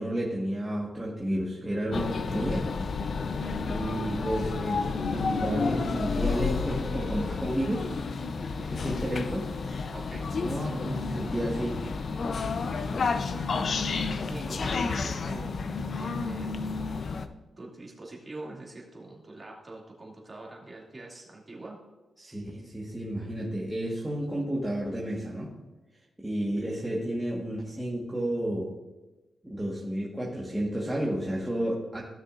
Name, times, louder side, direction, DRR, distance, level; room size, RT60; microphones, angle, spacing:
voice 1, 0.0-2.7 3.6-7.9 8.6-9.5 10.3-11.8 22.2-25.5 26.2-28.7 29.4-32.0, right 1 dB, 10° right, -5 dB, 1.4 m, -31 dB
sound 1, 1.9-17.3, left 4 dB, 55° left, 0.6 m, -31 dB
voice 2, 3.3-3.6 9.9-10.3 14.3-15.6 16.0-16.9 17.2-17.3 17.6-21.8 26.6-26.7, right 2 dB, 25° right, -3 dB, 2.4 m, -44 dB
15.5 x 6.4 x 2.5 m, 1.1 s
wide cardioid pair, 110°, 0 cm